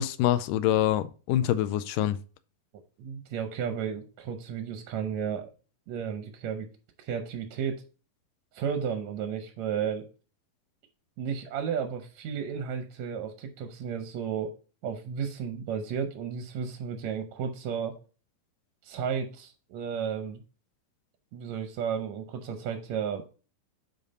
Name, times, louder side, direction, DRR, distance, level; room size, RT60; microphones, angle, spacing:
voice 1, 0.0-2.2, left 12 dB, 80° left, 2.0 m, -25 dB
voice 2, 3.0-5.5 5.9-6.7 7.0-7.8 8.5-10.1 11.2-14.5 14.8-18.0 18.8-20.4 21.3-23.2, right 7 dB, 75° right, 1.7 m, -33 dB
10.0 x 4.1 x 4.1 m
omnidirectional pair, 4.1 m